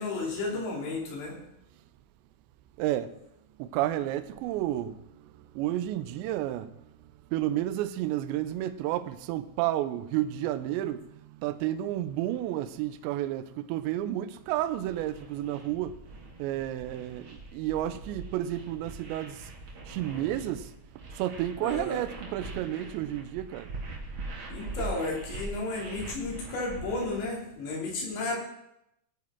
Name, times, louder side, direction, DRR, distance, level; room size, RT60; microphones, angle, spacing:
voice 1, 0.0-1.4 21.6-22.0 24.5-28.4, left 2 dB, 60° left, 4.7 m, -33 dB
voice 2, 2.8-3.1 3.6-6.8 7.3-16.0 16.4-19.5 19.9-20.7 21.1-23.7, right 13 dB, 85° right, 2.5 m, -31 dB
sound 1, 14.4-27.3, right 2 dB, 60° right, 1.3 m, -42 dB
19.5 x 9.0 x 3.7 m
omnidirectional pair, 5.9 m